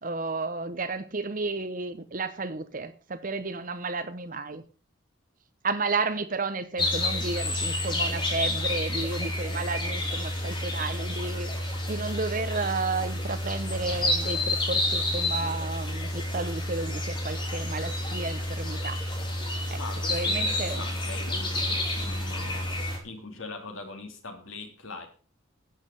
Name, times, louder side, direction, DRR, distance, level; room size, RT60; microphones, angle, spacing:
voice 1, 0.0-4.6 5.6-11.5 11.9-19.0 19.7-19.8 20.1-20.8, right 3 dB, 40° right, 0.9 m, -32 dB
sound 1, 6.8-23.0, left 1 dB, 25° left, 3.2 m, -29 dB
voice 2, 19.8-22.7 23.0-25.1, left 3 dB, 75° left, 3.0 m, -41 dB
11.5 x 8.5 x 6.7 m
head